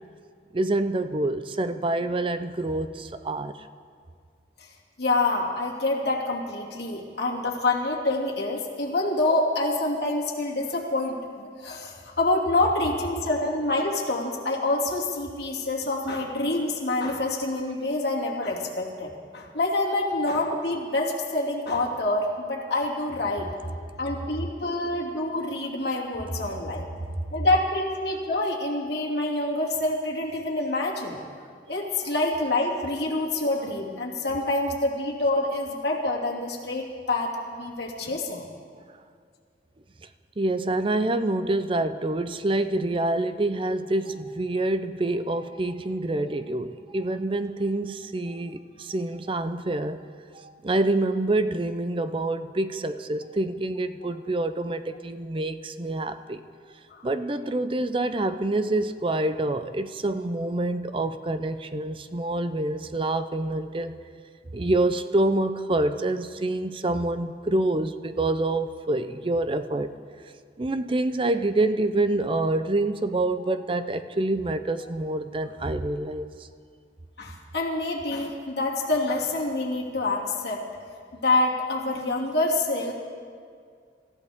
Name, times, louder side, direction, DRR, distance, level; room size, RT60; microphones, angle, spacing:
voice 1, 0.5-3.5 32.0-32.1 40.4-50.0 50.3-56.4 57.0-63.9 64.5-69.9 70.6-76.3, right 2 dB, 30° right, 11 dB, 0.5 m, -27 dB
voice 2, 5.0-23.5 24.0-26.8 27.3-31.2 31.7-38.5 56.9-57.0 73.4-73.5 77.2-80.6 81.1-82.9, left 2 dB, 65° left, -2 dB, 2.6 m, -27 dB
25.5 x 14.5 x 3.6 m, 2.1 s
head